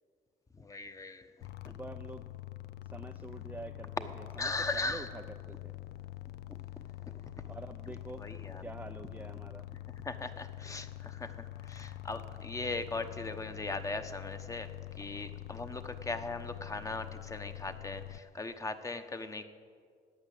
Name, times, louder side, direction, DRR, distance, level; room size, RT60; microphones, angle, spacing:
voice 1, 0.6-1.5 4.4-5.1 6.5-6.6 8.2-8.6 10.0-19.4, left 3 dB, 20° left, 9 dB, 1.0 m, -39 dB
sound 1, 1.4-18.2, left 14 dB, 75° left, 0.6 m, -45 dB
voice 2, 1.6-2.3 2.8-5.7 7.5-8.3 8.6-9.7 10.6-10.7, right 3 dB, 10° right, 6 dB, 0.5 m, -47 dB
14.5 x 9.7 x 8.2 m, 2.1 s
cardioid pair, 110°, 17 cm